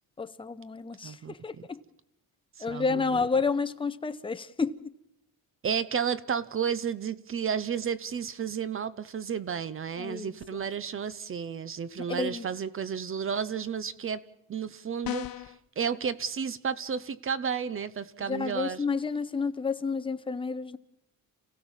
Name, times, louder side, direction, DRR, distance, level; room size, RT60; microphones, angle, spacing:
voice 1, 0.2-1.8 2.6-4.9 10.0-10.6 12.1-12.5 18.2-20.8, left 4 dB, 15° left, 0.7 m, -30 dB
voice 2, 1.0-1.3 2.6-3.3 5.6-18.8, right 7 dB, 35° right, 0.8 m, -32 dB
sound 1, 15.0-15.6, left 15 dB, 70° left, 0.8 m, -35 dB
29.0 x 16.0 x 7.3 m
cardioid pair, 155°, 37 cm